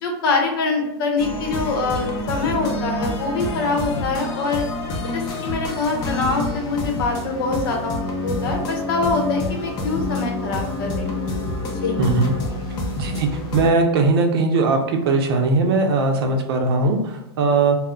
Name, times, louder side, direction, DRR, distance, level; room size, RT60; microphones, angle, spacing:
voice 1, 0.0-4.6 5.1-11.1 11.8-12.0, left 3 dB, 60° left, 2 dB, 0.7 m, -24 dB
sound 1, 1.2-13.7, left 2 dB, 25° left, 0.5 m, -27 dB
voice 2, 12.0-12.3 13.0-14.8 15.0-17.8, right 3 dB, 65° right, 4 dB, 0.6 m, -19 dB
2.2 x 2.0 x 3.7 m, 0.88 s
supercardioid pair, 155°, 14 cm